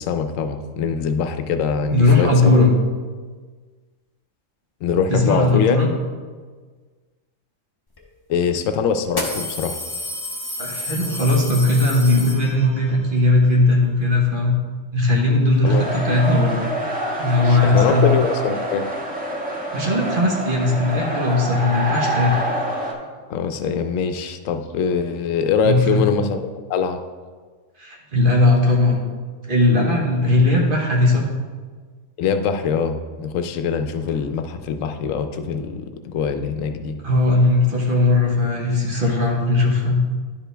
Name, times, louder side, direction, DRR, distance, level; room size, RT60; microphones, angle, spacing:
voice 1, 0.0-2.6 4.8-5.8 8.3-9.8 15.6-15.8 17.4-18.8 23.3-26.4 26.7-27.0 32.2-37.0, left 6 dB, 80° left, 8 dB, 0.9 m, -23 dB
voice 2, 1.9-2.7 5.1-5.9 10.6-14.6 14.9-16.5 17.2-18.2 19.7-22.4 25.6-26.0 27.8-29.0 29.5-31.3 37.0-40.0, left 2 dB, 45° right, -1 dB, 1.3 m, -18 dB
sound 1, 8.0-8.1 9.1-12.9, left 1 dB, 20° left, 0.7 m, -30 dB
sound 2, 15.6-22.9, right 1 dB, 5° right, 1.0 m, -26 dB
11.0 x 4.9 x 3.3 m, 1.5 s
omnidirectional pair, 1.4 m